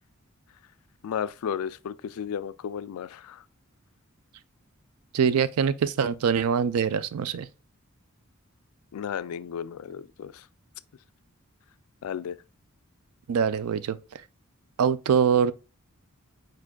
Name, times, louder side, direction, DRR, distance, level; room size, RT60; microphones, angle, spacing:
voice 1, 1.0-3.4 8.9-10.5 12.0-12.4, left 8 dB, 75° left, 0.3 m, -34 dB
voice 2, 5.1-7.5 13.3-14.0 14.8-15.5, right 7 dB, 85° right, 0.4 m, -23 dB
4.9 x 4.4 x 2.2 m
head